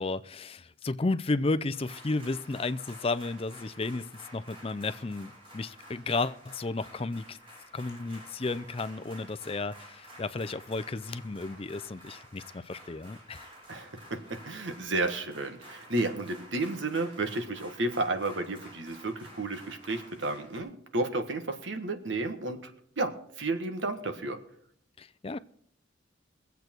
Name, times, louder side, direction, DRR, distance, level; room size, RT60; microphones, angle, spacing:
voice 1, 0.0-7.4 7.7-13.5 25.0-25.4, left 3 dB, 30° left, 14 dB, 0.5 m, -33 dB
sound 1, 1.7-20.6, equal, 30° right, 4.3 m, -51 dB
voice 2, 13.7-22.7 23.0-24.4, right 2 dB, 70° right, 7 dB, 1.5 m, -32 dB
22.0 x 8.2 x 4.5 m, 0.66 s
head